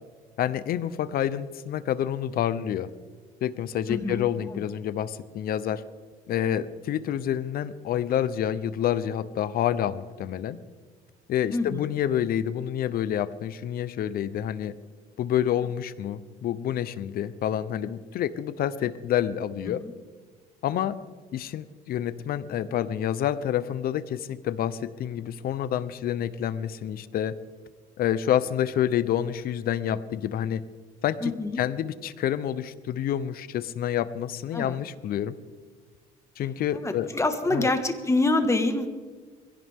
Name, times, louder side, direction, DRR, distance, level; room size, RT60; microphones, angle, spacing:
voice 1, 0.4-2.9 3.4-5.8 6.3-10.6 11.3-14.7 15.2-19.8 20.6-21.0 21.3-27.3 28.0-30.6 31.0-31.3 31.6-35.3 36.4-37.1 37.5-37.7, left 10 dB, 60° left, 15 dB, 0.8 m, -28 dB
voice 2, 3.9-4.6 11.5-11.9 19.7-19.9 31.2-31.6 34.5-34.8 36.7-38.9, left 2 dB, 15° left, 7 dB, 1.7 m, -26 dB
22.0 x 16.5 x 3.7 m, 1.5 s
cardioid pair, 110°, 17 cm